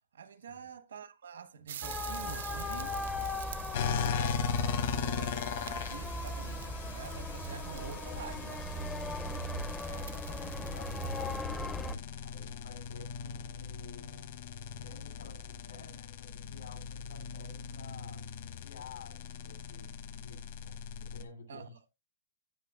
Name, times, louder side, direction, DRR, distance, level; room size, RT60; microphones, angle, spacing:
voice 1, 0.1-3.0 4.0-9.0 21.5-21.7, right 6 dB, 85° right, 1.2 m, -47 dB
sound 1, 1.7-11.4, right 10 dB, 55° right, 0.4 m, -48 dB
sound 2, 1.8-12.0, left 1 dB, 5° left, 0.4 m, -38 dB
sound 3, 3.7-21.2, left 7 dB, 45° left, 0.9 m, -39 dB
voice 2, 9.2-14.1 14.8-21.9, left 5 dB, 75° left, 2.8 m, -52 dB
16.0 x 5.6 x 2.4 m
hypercardioid pair, 175°, 0 cm